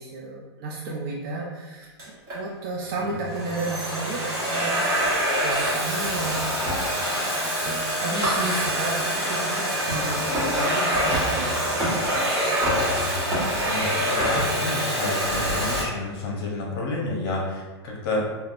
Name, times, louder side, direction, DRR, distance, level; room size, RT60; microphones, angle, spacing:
voice 1, 0.0-5.2 5.4-6.7 7.4-12.6, right 3 dB, 50° right, -3 dB, 0.5 m, -33 dB
Domestic sounds home sounds, 2.0-2.4 3.1-15.8, equal, 25° right, 1.1 m, -25 dB
voice 2, 13.6-18.3, left 2 dB, 60° left, -2 dB, 0.8 m, -30 dB
3.3 x 2.2 x 2.5 m, 1.2 s
hypercardioid pair, 130°, 14 cm